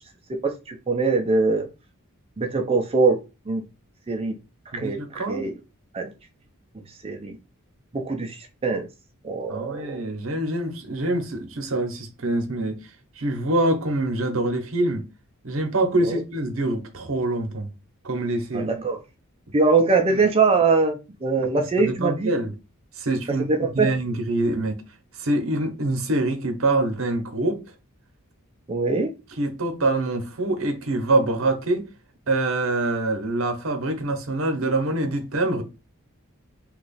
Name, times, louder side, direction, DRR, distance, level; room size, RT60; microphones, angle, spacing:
voice 1, 0.3-1.7 2.4-3.2 3.5-3.6 4.1-4.4 4.7-5.5 5.9-6.1 7.0-7.4 7.9-8.9 9.2-10.1 16.0-16.2 18.5-19.0 19.5-22.3 23.4-23.9 28.7-29.1, right 4 dB, 25° right, 0.4 m, -22 dB
voice 2, 4.7-5.5 9.5-12.8 13.2-15.0 15.4-17.7 18.0-18.7 21.8-22.5 23.0-23.5 23.7-24.8 25.2-27.6 29.4-31.8 32.3-35.6, right 2 dB, 65° right, 0.8 m, -25 dB
3.0 x 2.4 x 4.0 m
head